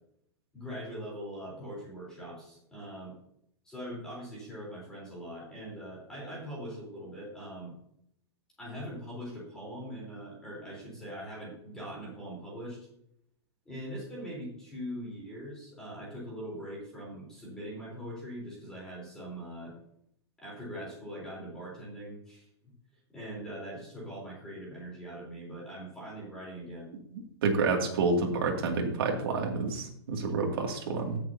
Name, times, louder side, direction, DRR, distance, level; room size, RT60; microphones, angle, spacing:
voice 1, 0.5-3.1 3.6-7.7 8.6-12.8 13.7-19.7 20.4-22.7 23.1-26.9, equal, 5° left, -5 dB, 3.6 m, -42 dB
voice 2, 27.1-31.2, right 4 dB, 55° right, 1 dB, 2.3 m, -29 dB
16.0 x 6.8 x 2.8 m, 0.72 s
supercardioid pair, 180°, 14 cm